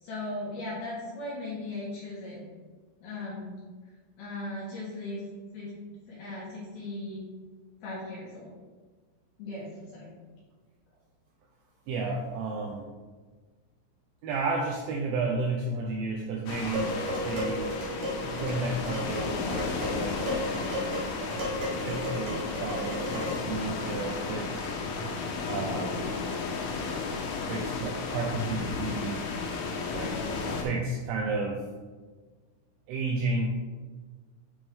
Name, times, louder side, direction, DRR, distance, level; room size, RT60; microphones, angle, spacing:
voice 1, 0.0-2.4 3.0-3.5 4.2-5.2 5.5-5.7 6.1-7.2 7.8-8.6 9.4-10.1, left 2 dB, 65° left, -6 dB, 2.6 m, -37 dB
voice 2, 11.9-12.9 14.2-17.0 17.2-17.8 18.2-21.6 21.9-24.8 25.5-26.1 27.5-29.2 29.9-30.2 30.6-31.6 32.9-33.6, right 3 dB, 90° right, 0 dB, 2.6 m, -32 dB
sound 1, 16.5-30.6, left 4 dB, 90° left, 3.6 m, -33 dB
Dishes pots and pans, 16.7-23.6, equal, 60° right, 2.9 m, -35 dB
sound 2, 16.7-21.5, right 1 dB, 75° right, 1.9 m, -44 dB
9.8 x 3.5 x 3.5 m, 1.4 s
omnidirectional pair, 6.0 m